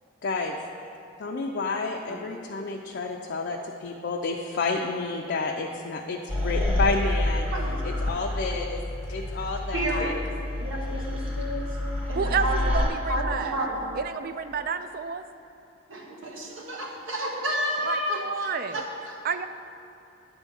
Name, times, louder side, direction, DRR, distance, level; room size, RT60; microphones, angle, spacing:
voice 1, 0.2-0.5 1.2-7.5 7.8-8.8 9.1-10.1, left 3 dB, 55° left, 0 dB, 0.4 m, -30 dB
sound 1, 6.3-12.9, left 1 dB, 30° right, 1.4 m, -28 dB
voice 2, 9.7-10.2 10.6-11.6 12.1-12.7 13.1-13.9 15.9-19.2, equal, 85° right, -2 dB, 1.4 m, -31 dB
voice 3, 12.2-13.6 14.0-15.2 17.9-18.8 19.2-19.5, right 5 dB, 50° right, 10 dB, 0.3 m, -30 dB
9.7 x 3.6 x 6.9 m, 2.9 s
head